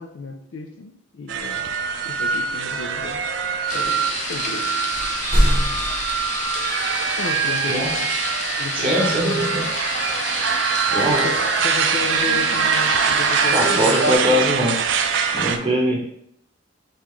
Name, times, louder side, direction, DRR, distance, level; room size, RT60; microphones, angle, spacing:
voice 1, 0.0-1.7 2.0-3.3 3.7-4.7 7.2-8.1 8.6-9.2 11.1-14.5, left 3 dB, 90° left, 4 dB, 0.4 m, -33 dB
sound 1, 1.3-15.6, right 6 dB, 70° right, 0.4 m, -23 dB
sound 2, 3.7-14.2, left 2 dB, 40° left, 0.6 m, -29 dB
sound 3, 4.4-4.6 4.9-6.9, equal, 15° left, 1.2 m, -23 dB
voice 2, 8.7-9.6 10.9-11.2 13.5-14.8 15.3-16.0, equal, 25° right, -2 dB, 0.7 m, -21 dB
5.4 x 2.4 x 3.0 m, 0.70 s
head